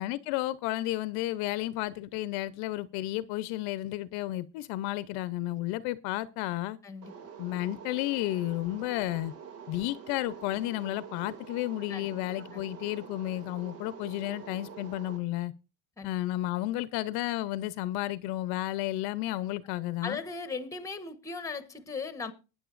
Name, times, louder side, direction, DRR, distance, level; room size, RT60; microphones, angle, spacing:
voice 1, 0.0-6.8 7.4-9.3 9.7-15.5 16.0-20.2, left 16 dB, 60° left, 0.7 m, -32 dB
sound 1, 7.0-15.2, right 7 dB, 65° right, 2.6 m, -46 dB
voice 2, 20.0-22.3, left 4 dB, 5° left, 1.1 m, -37 dB
19.5 x 9.8 x 2.5 m
cardioid pair, 160°, 43 cm